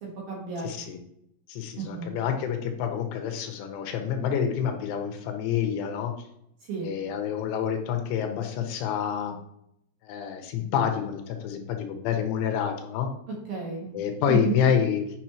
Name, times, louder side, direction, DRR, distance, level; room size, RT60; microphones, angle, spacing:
voice 1, 0.0-0.9 1.8-2.1 6.7-6.9 13.5-13.9 14.3-14.6, right 4 dB, 65° right, -3 dB, 2.6 m, -32 dB
voice 2, 0.6-1.0 1.5-6.1 6.8-9.4 10.0-13.1 13.9-15.0, left 8 dB, 85° left, 4 dB, 3.2 m, -28 dB
8.5 x 6.4 x 3.0 m, 0.75 s
omnidirectional pair, 5.6 m